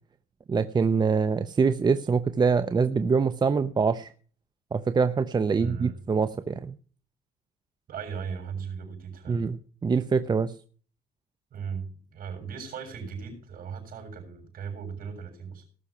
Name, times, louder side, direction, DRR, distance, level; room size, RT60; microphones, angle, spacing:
voice 1, 0.5-4.1 4.7-6.7 9.3-10.5, right 5 dB, 25° right, 12 dB, 0.7 m, -24 dB
voice 2, 5.6-6.0 7.9-9.4 11.5-15.6, right 6 dB, 55° right, 4 dB, 7.1 m, -37 dB
19.0 x 6.4 x 5.9 m, 0.42 s
cardioid pair, 110°, 17 cm